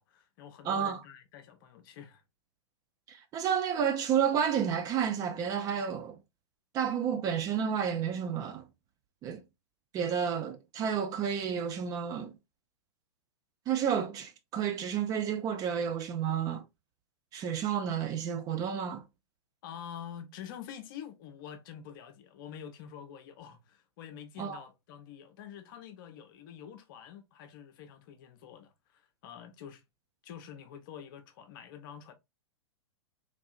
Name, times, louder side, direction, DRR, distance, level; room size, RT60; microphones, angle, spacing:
voice 1, 0.0-2.2 19.6-29.8 30.2-32.1, left 9 dB, 45° left, 0.7 m, -47 dB
voice 2, 0.6-1.0 3.1-6.2 6.7-8.7 9.2-9.4 9.9-12.3 13.7-16.6 17.3-19.0 24.4-24.6, right 8 dB, 25° right, 0.4 m, -31 dB
3.2 x 2.6 x 2.4 m
figure-of-eight pair, 105°, 15 cm